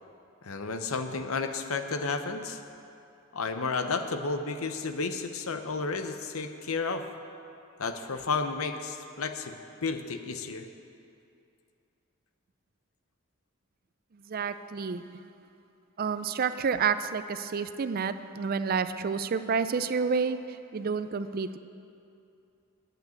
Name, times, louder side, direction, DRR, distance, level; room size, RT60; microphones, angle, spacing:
voice 1, 0.4-2.6 3.3-7.1 7.8-10.7, left 4 dB, 80° left, 7 dB, 0.8 m, -32 dB
voice 2, 14.3-15.0 16.0-21.6, right 5 dB, 45° right, 12 dB, 0.4 m, -29 dB
9.1 x 8.1 x 9.3 m, 2.6 s
head